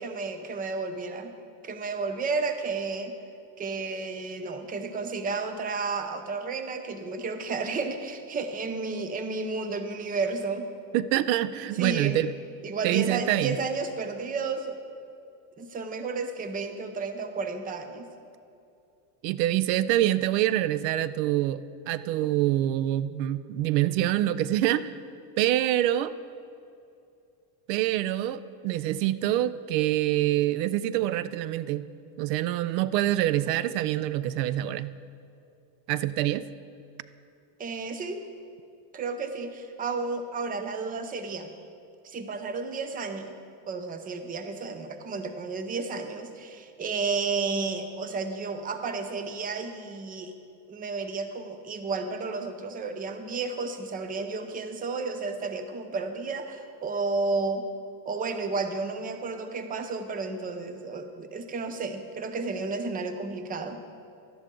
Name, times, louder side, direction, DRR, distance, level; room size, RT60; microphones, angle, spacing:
voice 1, 0.0-1.3 1.6-3.2 3.6-10.7 11.8-12.2 12.6-14.8 15.6-18.0 37.6-38.2 38.9-41.5 42.0-43.4 43.7-50.3 50.7-57.6 58.1-63.8, right 4 dB, 15° right, 8 dB, 0.6 m, -32 dB
voice 2, 10.9-12.3 12.8-13.6 19.2-24.9 25.4-26.1 27.7-31.8 32.2-35.0 35.9-36.4, right 13 dB, 80° right, 16 dB, 0.5 m, -26 dB
12.5 x 10.5 x 3.8 m, 2.5 s
supercardioid pair, 125°, 49 cm